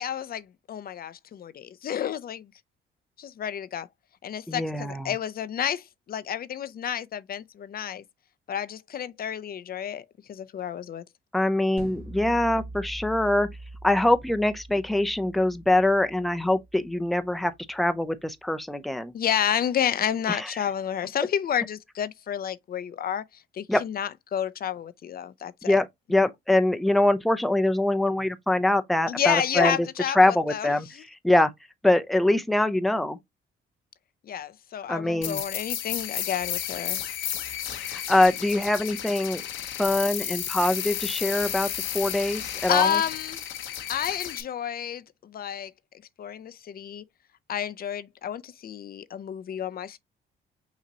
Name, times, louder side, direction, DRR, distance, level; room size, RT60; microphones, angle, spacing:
voice 1, 0.0-2.5 3.2-3.9 4.2-8.0 8.5-11.0 19.1-25.8 29.1-31.0 34.2-37.0 42.7-43.4 43.9-45.7 46.2-47.0 47.5-50.0, left 9 dB, 50° left, 0.5 m, -30 dB
voice 2, 4.5-5.1 11.3-13.5 13.8-19.1 20.3-20.6 23.7-23.8 25.6-29.9 30.1-30.9 31.2-31.5 31.8-33.2 34.9-35.4 37.9-39.4 39.8-41.7 41.9-43.0, left 1 dB, ahead, 0.5 m, -23 dB
sound 1, 11.8-16.9, right 2 dB, 50° right, 2.1 m, -43 dB
sound 2, 35.2-44.4, left 10 dB, 80° left, 0.9 m, -33 dB
5.9 x 2.9 x 2.8 m
cardioid pair, 90°, 20 cm